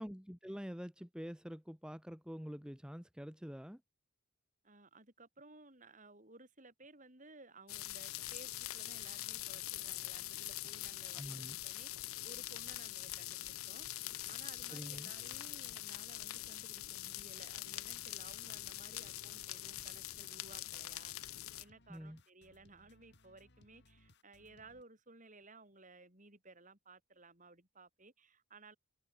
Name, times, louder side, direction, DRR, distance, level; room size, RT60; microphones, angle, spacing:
voice 1, 0.0-3.8 11.1-11.6 14.7-15.1 21.9-22.2, equal, 5° right, 1.6 m, -46 dB
voice 2, 4.6-11.4 11.6-28.8, right 3 dB, 35° right, 6.9 m, -58 dB
sound 1, 7.7-21.6, left 15 dB, 80° left, 0.9 m, -44 dB
sound 2, 17.7-24.8, left 1 dB, 55° left, 7.9 m, -67 dB
head